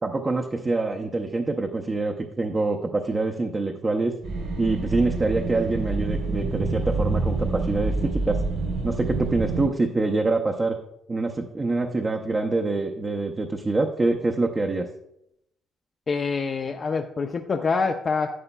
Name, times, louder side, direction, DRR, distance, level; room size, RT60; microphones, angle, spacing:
voice 1, 0.0-4.2 4.6-8.4 8.8-10.8 11.1-14.9, right 3 dB, 20° right, 2 dB, 0.5 m, -25 dB
sound 1, 4.2-9.7, right 3 dB, 80° right, 2.9 m, -27 dB
voice 2, 16.1-18.3, left 4 dB, 30° left, 4 dB, 0.4 m, -25 dB
11.0 x 8.9 x 2.2 m, 0.79 s
cardioid pair, 135°, 0 cm